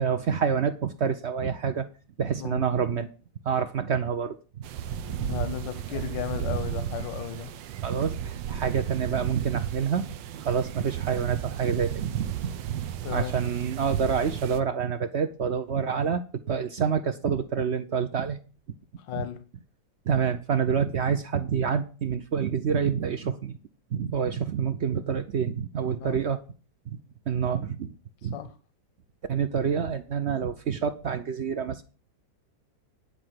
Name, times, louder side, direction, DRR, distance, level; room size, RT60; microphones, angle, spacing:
voice 1, 0.0-1.9 2.2-3.1 3.4-4.4 7.8-10.1 10.4-12.5 13.1-16.2 16.5-18.4 19.1-19.2 20.1-23.5 23.9-26.4 27.3-27.9 28.2-28.4 29.3-31.8, right 7 dB, 60° right, 0.7 m, -27 dB
sound 1, 4.6-14.6, right 10 dB, 85° right, 1.4 m, -33 dB
voice 2, 5.1-7.6 13.0-13.3 19.0-19.4 25.9-26.2 28.3-28.6, left 11 dB, 90° left, 1.5 m, -35 dB
11.0 x 4.9 x 7.6 m
omnidirectional pair, 1.9 m